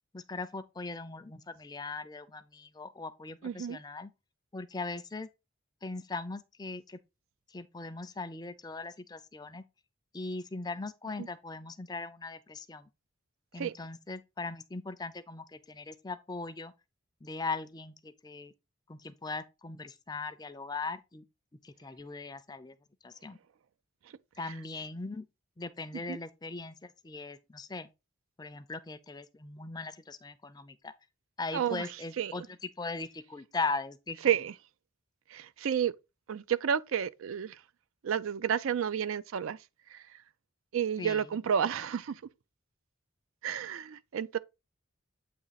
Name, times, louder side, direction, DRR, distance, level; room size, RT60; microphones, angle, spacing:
voice 1, 0.1-4.1 4.5-5.3 5.8-7.0 7.5-9.6 10.1-12.9 13.5-16.7 17.2-18.5 18.9-21.2 21.6-22.8 23.0-23.4 24.4-25.2 25.6-27.9 28.4-30.9 31.4-32.4 32.8-34.2 41.0-41.2, left 3 dB, 20° left, 0.4 m, -39 dB
voice 2, 3.4-3.8 11.2-11.3 13.6-13.7 24.4-24.5 25.9-26.2 31.5-32.5 34.2-34.5 35.3-35.9 36.3-37.6 38.0-39.6 39.9-40.0 40.7-42.2 43.4-44.4, right 8 dB, 80° right, 0.4 m, -31 dB
8.4 x 3.1 x 4.0 m
head